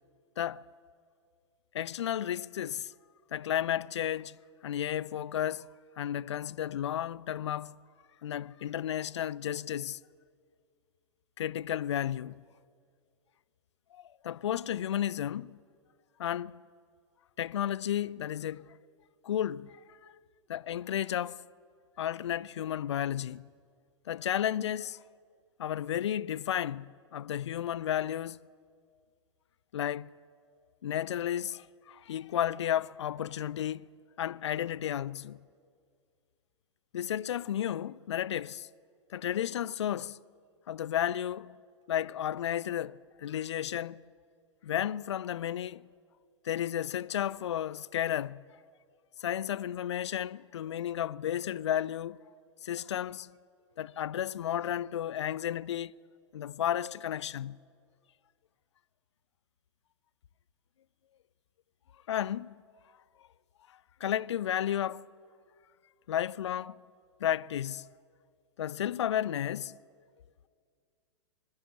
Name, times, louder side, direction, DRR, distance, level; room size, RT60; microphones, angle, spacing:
voice 1, 1.7-2.9 3.3-4.4 4.6-5.7 6.0-7.8 8.2-10.0 11.4-12.4 13.9-15.6 16.2-16.6 17.4-18.8 19.2-20.1 20.5-21.4 22.0-23.5 24.1-25.0 25.6-28.4 29.7-30.1 30.8-33.9 34.2-35.4 36.9-38.7 39.1-40.2 40.7-41.6 41.9-44.0 44.6-45.9 46.4-48.4 49.2-52.2 52.6-53.3 53.8-55.9 56.3-57.6 62.1-62.6 63.2-63.3 63.7-65.1 66.1-66.8 67.2-67.9 68.6-69.8, left 10 dB, 70° left, 0.4 m, -33 dB
20.0 x 13.0 x 9.9 m
figure-of-eight pair, 100°, 15 cm